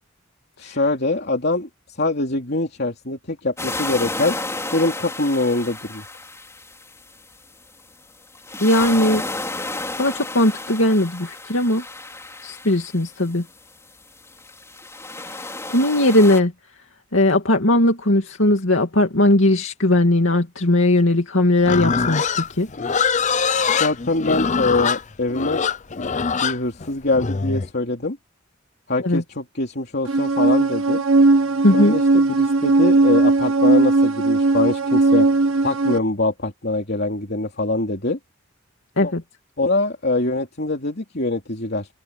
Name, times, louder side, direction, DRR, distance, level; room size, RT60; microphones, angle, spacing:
voice 1, 0.6-1.7 2.0-4.3 4.7-6.0 23.8-25.7 26.0-26.1 26.4-28.2 28.9-31.0 31.7-35.3 35.6-38.2 39.0-39.1 39.6-41.9, left 2 dB, 55° left, 3.1 m, -23 dB
sound 1, 3.6-7.3 8.3-13.4 14.2-16.4, left 2 dB, 15° left, 4.2 m, -32 dB
voice 2, 8.6-9.2 10.0-11.8 12.4-13.4 15.7-16.5 17.1-22.2 22.5-22.7 29.0-29.2 31.6-31.9 39.0-39.2, left 1 dB, 70° left, 2.6 m, -18 dB
Livestock farm animals working animals, 21.6-27.7, left 6 dB, 35° left, 0.6 m, -23 dB
sound 2, 30.1-36.0, right 3 dB, 80° right, 1.5 m, -17 dB
open air
head